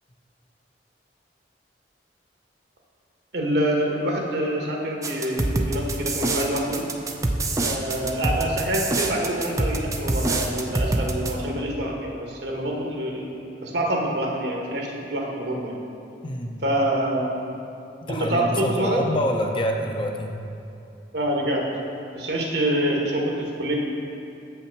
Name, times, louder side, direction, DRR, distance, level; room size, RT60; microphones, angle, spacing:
voice 1, 3.3-6.8 7.6-15.7 16.6-17.3 18.1-19.0 21.1-21.6 22.1-23.8, right 1 dB, 65° right, -1 dB, 1.4 m, -26 dB
sound 1, 5.0-11.3, right 2 dB, 20° right, 0.5 m, -25 dB
voice 2, 16.2-16.6 18.0-20.4, left 1 dB, 30° left, 2 dB, 0.6 m, -26 dB
7.8 x 5.7 x 5.9 m, 2.7 s
head